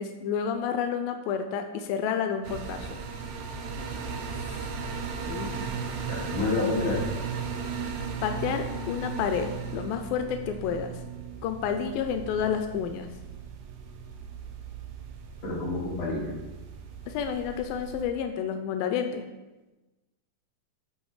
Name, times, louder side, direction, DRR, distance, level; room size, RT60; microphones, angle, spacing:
voice 1, 0.0-3.0 5.3-5.6 8.2-10.9 11.4-13.1 17.1-19.2, left 7 dB, 90° left, 7 dB, 2.4 m, -30 dB
sound 1, 2.4-18.0, right 5 dB, 70° right, 2.1 m, -37 dB
voice 2, 6.1-7.0 15.4-16.3, left 2 dB, 50° left, -4 dB, 2.9 m, -28 dB
8.6 x 5.6 x 4.7 m, 1.1 s
omnidirectional pair, 4.0 m